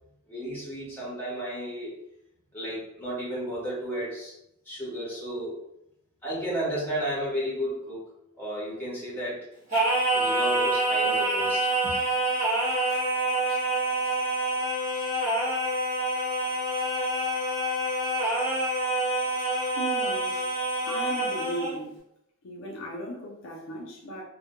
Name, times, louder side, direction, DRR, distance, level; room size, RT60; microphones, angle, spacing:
voice 1, 0.3-1.9 2.5-4.3 4.6-5.6 6.2-8.1 8.4-9.5 10.1-11.9, right 1 dB, 10° left, -6 dB, 0.9 m, -33 dB
Singing, 9.7-21.8, right 1 dB, 35° right, 1.0 m, -27 dB
voice 2, 19.7-20.4 20.9-21.9 22.4-24.2, equal, 65° left, -1 dB, 0.4 m, -36 dB
2.1 x 2.1 x 2.9 m, 0.79 s
head